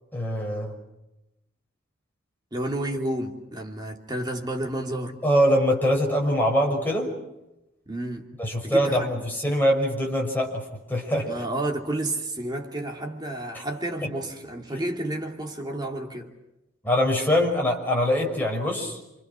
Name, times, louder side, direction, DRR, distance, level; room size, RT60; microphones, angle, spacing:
voice 1, 0.1-0.7 5.2-7.1 8.4-11.3 13.5-13.6 14.0-14.1 16.8-19.0, equal, 10° left, 6.0 m, -23 dB
voice 2, 2.5-5.2 7.9-8.2 8.6-9.1 11.3-16.3, right 1 dB, 20° right, 2.7 m, -31 dB
28.5 x 26.5 x 6.3 m
head